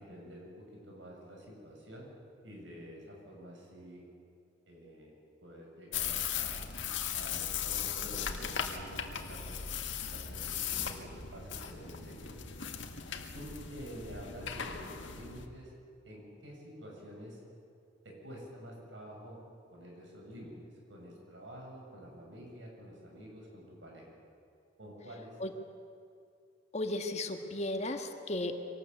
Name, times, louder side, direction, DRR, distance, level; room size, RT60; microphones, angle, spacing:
voice 1, 0.0-2.1 2.4-4.1 4.7-9.7 10.1-12.4 13.3-15.7 16.0-17.4 18.0-19.4 19.7-24.1 24.8-25.4, equal, 80° right, -1 dB, 7.5 m, -49 dB
sound 1, 5.9-15.4, left 8 dB, 90° left, 1.8 m, -38 dB
voice 2, 26.7-28.7, left 1 dB, 35° left, 5 dB, 1.7 m, -35 dB
24.0 x 19.0 x 8.3 m, 2.4 s
head